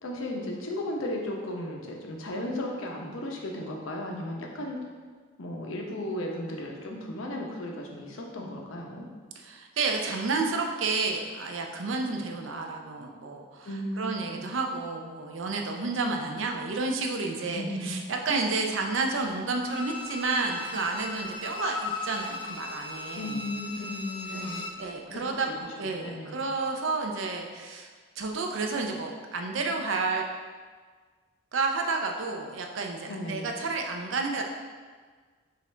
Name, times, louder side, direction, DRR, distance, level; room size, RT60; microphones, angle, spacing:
voice 1, 0.0-4.8 5.4-9.1 13.6-14.5 17.4-17.9 18.3-18.5 23.1-24.7 25.1-26.4 33.1-33.5, left 1 dB, 85° left, 0 dB, 0.8 m, -35 dB
voice 2, 9.4-13.7 14.0-23.4 24.8-27.9 28.2-30.2 31.5-34.4, right 3 dB, 75° right, 2 dB, 0.5 m, -30 dB
Bowed string instrument, 19.6-24.9 25.2-25.3, left 3 dB, 25° left, 0.3 m, -37 dB
6.4 x 2.5 x 3.2 m, 1.5 s
head